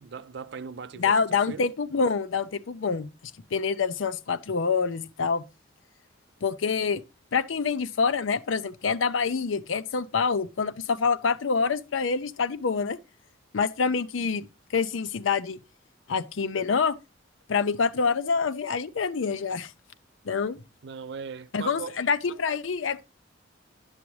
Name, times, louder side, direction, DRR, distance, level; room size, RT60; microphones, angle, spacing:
voice 1, 0.0-1.7 20.8-22.0, right 5 dB, 60° right, 0.5 m, -39 dB
voice 2, 1.0-3.1 3.5-5.4 6.4-7.0 7.3-13.0 13.5-15.6 16.1-16.9 17.5-19.7 20.2-20.6 21.5-23.0, left 5 dB, 80° left, 0.5 m, -26 dB
9.8 x 7.0 x 3.1 m
head